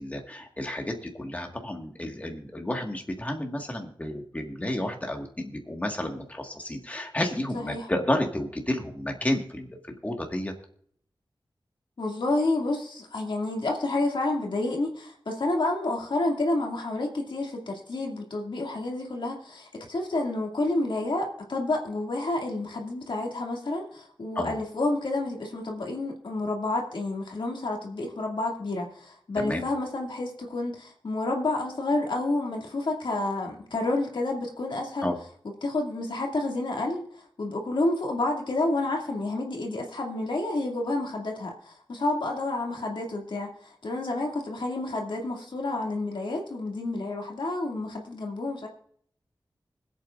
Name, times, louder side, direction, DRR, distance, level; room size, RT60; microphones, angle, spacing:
voice 1, 0.0-10.5 24.3-24.5 29.4-29.6 35.0-35.2, left 1 dB, 15° left, 2 dB, 1.7 m, -31 dB
voice 2, 7.5-7.9 12.0-35.1 35.6-37.0 37.4-48.7, left 2 dB, 70° left, 0 dB, 2.3 m, -29 dB
25.5 x 8.5 x 2.5 m, 0.62 s
wide cardioid pair, 105°, 8 cm